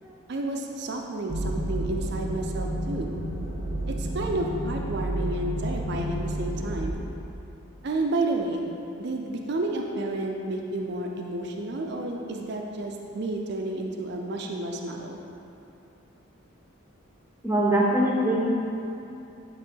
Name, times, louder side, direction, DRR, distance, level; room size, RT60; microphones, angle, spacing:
voice 1, 0.3-3.1 3.9-7.0 7.8-8.7 9.0-15.2, right 2 dB, 50° right, 2 dB, 0.4 m, -31 dB
sound 1, 1.3-6.9, right 1 dB, 85° right, 0.9 m, -30 dB
voice 2, 17.4-18.4, right 1 dB, 10° right, -3 dB, 0.6 m, -22 dB
8.8 x 3.1 x 4.5 m, 2.8 s
head